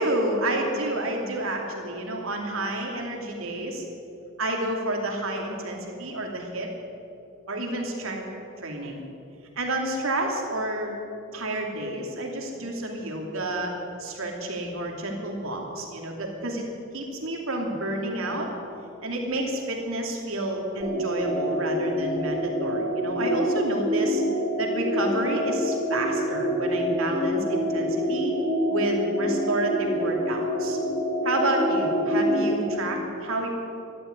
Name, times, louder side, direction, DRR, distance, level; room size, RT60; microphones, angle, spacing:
voice 1, 0.0-3.8 4.4-6.7 7.5-8.2 8.6-9.0 9.6-10.9 11.3-13.7 14.0-16.6 16.9-18.5 19.0-24.2 24.6-28.3 28.7-30.8 31.2-33.5, right 1 dB, 75° right, 1 dB, 2.8 m, -29 dB
sound 1, 20.8-32.7, equal, 25° right, 3.2 m, -26 dB
12.5 x 12.0 x 9.3 m, 2.7 s
head